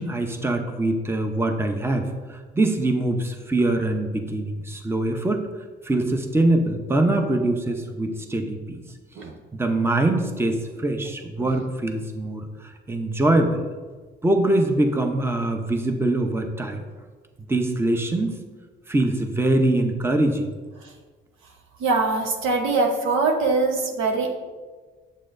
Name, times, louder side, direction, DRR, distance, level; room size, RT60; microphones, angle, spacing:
voice 1, 0.0-5.5 5.8-8.8 9.5-13.7 14.2-16.8 17.4-18.3 18.9-20.5, right 2 dB, 10° right, 4 dB, 0.8 m, -23 dB
voice 2, 21.8-24.4, right 3 dB, 85° right, 2 dB, 1.1 m, -22 dB
8.3 x 7.5 x 2.6 m, 1.4 s
cardioid pair, 90°, 20 cm